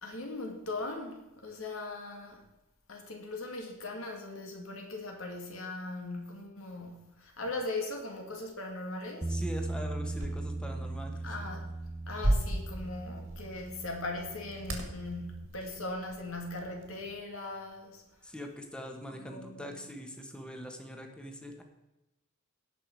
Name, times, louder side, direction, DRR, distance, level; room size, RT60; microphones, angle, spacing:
voice 1, 0.0-2.5 2.9-9.3 11.2-11.7 12.1-18.0 19.2-19.9, left 2 dB, 70° left, 2 dB, 2.3 m, -39 dB
Bass guitar, 9.2-15.5, right 2 dB, 15° right, 0.4 m, -39 dB
voice 2, 9.3-11.2 18.2-21.6, equal, 5° left, 3 dB, 1.4 m, -42 dB
sound 1, 10.1-17.2, right 1 dB, 70° right, 2.2 m, -37 dB
17.5 x 6.0 x 4.7 m, 0.99 s
head